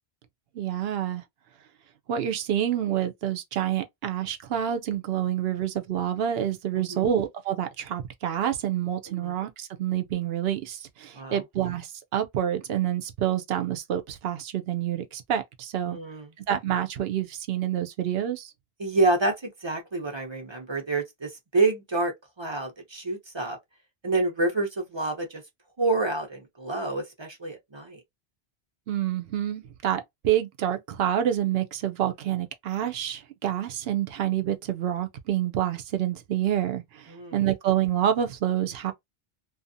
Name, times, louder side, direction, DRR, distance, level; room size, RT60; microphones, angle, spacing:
voice 1, 0.5-1.2 2.1-16.0 16.5-18.5 28.9-38.9, right 10 dB, 75° right, 0.8 m, -28 dB
voice 2, 6.7-7.1 9.1-9.3 11.1-11.4 15.9-16.3 18.8-23.6 24.0-25.4 25.8-28.0 37.1-37.4, right 3 dB, 30° right, 0.6 m, -28 dB
2.5 x 2.4 x 2.6 m
omnidirectional pair, 1.0 m